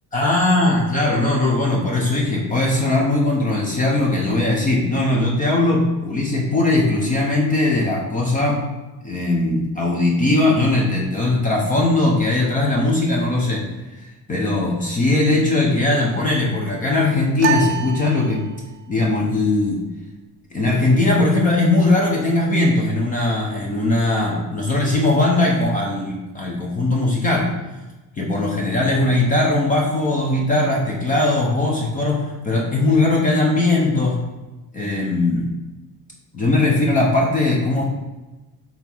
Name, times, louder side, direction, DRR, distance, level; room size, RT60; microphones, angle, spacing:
voice 1, 0.1-8.6 9.0-13.6 14.3-18.5 18.9-19.8 20.5-27.5 28.2-34.2 34.7-35.5 36.3-37.8, left 2 dB, 20° left, -2 dB, 0.7 m, -19 dB
sound 1, 17.4-18.9, right 7 dB, 35° right, 0.4 m, -26 dB
5.9 x 3.6 x 4.5 m, 1.1 s
cardioid pair, 180°, 37 cm